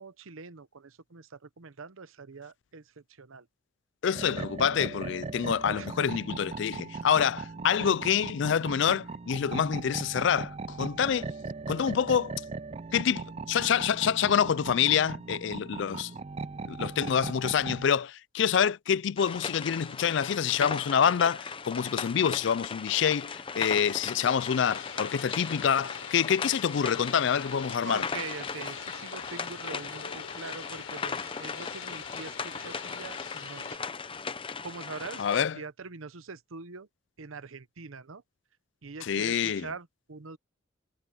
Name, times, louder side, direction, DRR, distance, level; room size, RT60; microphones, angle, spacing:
voice 1, 0.0-3.5 5.8-6.1 27.8-33.8 34.6-36.9 37.2-38.2 38.8-40.4, right 4 dB, 80° right, 0.9 m, -43 dB
voice 2, 4.0-11.3 11.7-12.3 12.9-16.1 16.7-28.1 35.2-35.6 39.0-39.7, left 8 dB, 60° left, 0.4 m, -27 dB
sound 1, 4.1-17.9, right 4 dB, 30° right, 0.4 m, -38 dB
sound 2, 19.2-35.4, left 5 dB, 25° left, 0.7 m, -38 dB
sound 3, 24.5-33.8, left 7 dB, 90° left, 5.6 m, -44 dB
head